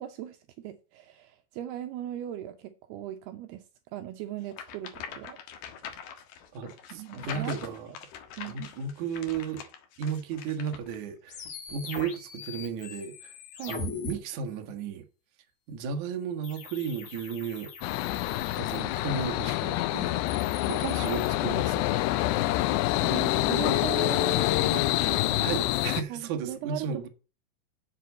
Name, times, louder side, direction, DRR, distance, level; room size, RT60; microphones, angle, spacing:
voice 1, 0.0-3.6 3.9-5.4 6.9-7.6 8.4-8.7 13.6-13.8 21.9-22.0 23.0-25.5 26.1-27.1, right 12 dB, 80° right, 2.7 m, -38 dB
sound 1, 4.5-11.0, left 8 dB, 70° left, 3.3 m, -43 dB
voice 2, 6.5-7.9 8.5-9.6 10.0-11.4 11.7-13.3 13.7-15.0 15.7-17.7 18.6-21.9 24.7-24.9 25.4-27.1, right 6 dB, 55° right, 2.5 m, -34 dB
sound 2, 11.3-14.1 16.4-19.2 20.1-21.3, left 5 dB, 50° left, 2.6 m, -41 dB
sound 3, 17.8-26.0, left 16 dB, 85° left, 2.8 m, -26 dB
7.7 x 7.7 x 8.2 m
omnidirectional pair, 4.8 m